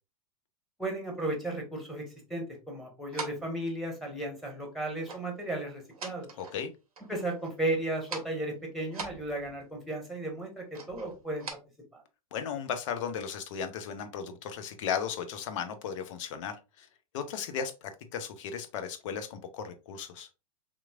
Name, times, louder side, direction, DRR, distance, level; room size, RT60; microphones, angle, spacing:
voice 1, 0.8-2.0 2.3-6.3 7.1-11.6 11.9-12.0, right 1 dB, ahead, 2 dB, 1.3 m, -34 dB
sound 1, 3.1-3.6 5.0-5.3 5.7-6.7 7.0-7.7 8.0-8.4 8.9-9.8 10.7-11.5, right 4 dB, 80° right, 0.7 m, -42 dB
voice 2, 6.4-6.7 12.3-16.9 17.1-20.3, left 7 dB, 55° left, 8 dB, 0.7 m, -36 dB
3.6 x 3.0 x 2.4 m, 0.28 s
figure-of-eight pair, 90°, 19 cm